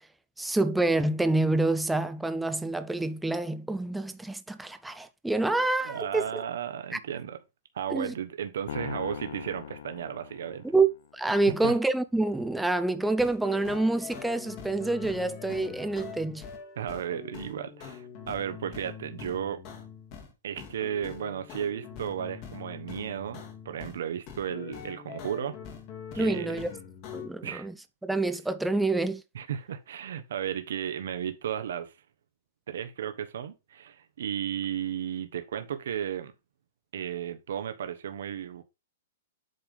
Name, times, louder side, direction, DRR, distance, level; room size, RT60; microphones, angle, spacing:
voice 1, 0.4-6.2 7.9-8.1 10.7-16.4 26.2-26.7 27.1-27.7 28.0-29.2, right 2 dB, 5° right, 0.4 m, -27 dB
voice 2, 5.8-7.4 7.7-10.7 11.4-11.7 16.8-19.6 20.4-25.6 26.1-26.6 27.4-27.7 29.3-31.9 32.7-36.3 36.9-38.6, right 9 dB, 70° right, 1.0 m, -34 dB
sound 1, 8.7-11.1, left 9 dB, 60° left, 0.7 m, -40 dB
sound 2, 13.0-20.3 20.6-24.0 24.3-27.3, left 7 dB, 30° left, 1.7 m, -43 dB
7.9 x 3.6 x 5.2 m
hypercardioid pair, 165°, 0 cm